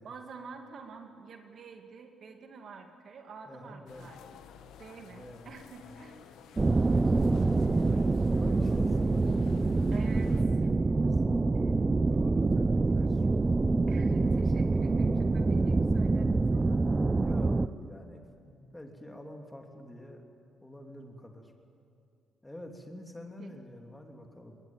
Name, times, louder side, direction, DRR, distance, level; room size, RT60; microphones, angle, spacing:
voice 1, 0.0-4.2 4.8-6.3 9.9-10.6 11.5-12.0 13.9-16.8 23.4-23.6, right 5 dB, 55° right, 4 dB, 2.3 m, -48 dB
voice 2, 3.5-4.1 5.1-5.5 5.8-6.0 7.4-10.4 10.7-11.4 12.1-13.3 16.9-20.2 20.6-21.5 22.4-24.6, left 1 dB, 10° left, 3 dB, 3.0 m, -47 dB
sound 1, 3.9-10.4, left 8 dB, 85° left, 1.4 m, -53 dB
sound 2, 6.6-17.7, right 3 dB, 25° right, 0.6 m, -26 dB
21.0 x 20.0 x 9.1 m, 2.5 s
cardioid pair, 90°, 0 cm